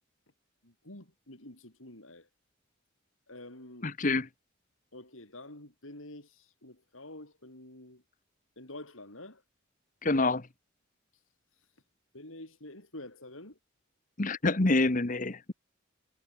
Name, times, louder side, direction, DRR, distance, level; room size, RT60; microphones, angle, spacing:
voice 1, 0.6-2.3 3.3-3.9 4.9-8.0 8.6-9.4 11.1-11.2 11.5-11.7 12.1-13.6, left 1 dB, 85° left, 7.9 m, -48 dB
voice 2, 3.8-4.3 10.0-10.5 14.2-15.5, left 2 dB, 40° left, 1.1 m, -27 dB
head